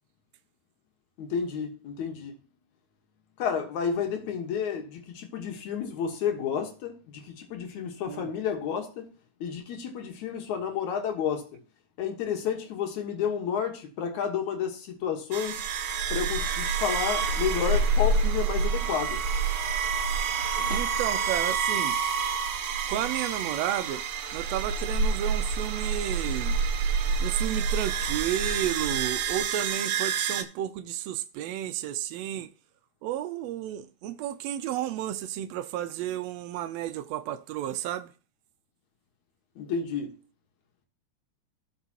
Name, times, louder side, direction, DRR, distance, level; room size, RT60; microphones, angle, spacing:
voice 1, 1.2-2.3 3.4-9.1 9.4-11.5 12.0-15.6 16.1-19.2 20.7-20.8 39.6-40.2, left 7 dB, 75° left, 2.6 m, -31 dB
sound 1, 15.3-30.4, right 5 dB, 70° right, 2.0 m, -28 dB
voice 2, 20.6-22.0 22.9-24.0 24.3-26.6 27.2-32.5 33.0-38.1, right 11 dB, 90° right, 1.5 m, -32 dB
16.0 x 5.5 x 2.9 m
omnidirectional pair, 3.5 m